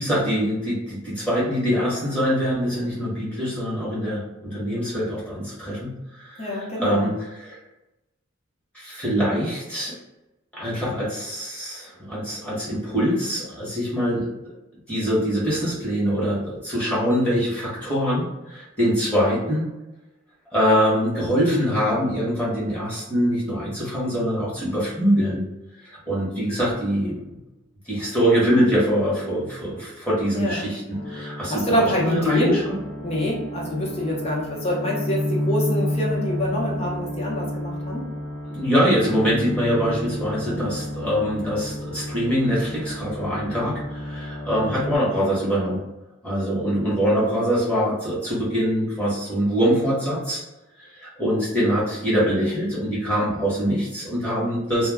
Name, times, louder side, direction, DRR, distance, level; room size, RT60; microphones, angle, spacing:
voice 1, 0.0-7.6 8.7-10.0 10.5-14.5 14.9-19.7 20.5-25.4 25.8-27.3 27.9-30.8 31.0-32.7 38.5-45.8 46.2-50.4 50.8-54.9, equal, 5° left, -8 dB, 0.9 m, -24 dB
voice 2, 6.4-7.1 30.3-30.7 31.5-32.6 33.0-38.0 40.5-40.7, left 1 dB, 30° left, -4 dB, 0.7 m, -25 dB
sound 1, 30.9-45.0, left 1 dB, 10° right, 0.4 m, -31 dB
2.2 x 2.1 x 3.4 m, 1.0 s
head